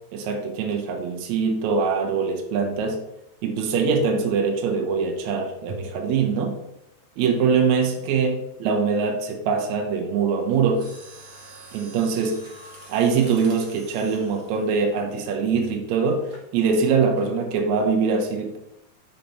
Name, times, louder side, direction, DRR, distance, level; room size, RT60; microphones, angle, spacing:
voice 1, 0.1-3.0 3.4-6.6 7.2-10.9 11.7-12.4 12.9-18.6, right 5 dB, 85° right, 2 dB, 1.5 m, -23 dB
Mechanisms, 10.7-15.7 16.3-16.5 17.2-17.5 17.8-17.9, right 2 dB, 45° right, 3.5 m, -46 dB
6.7 x 4.4 x 5.5 m, 0.85 s
omnidirectional pair, 4.7 m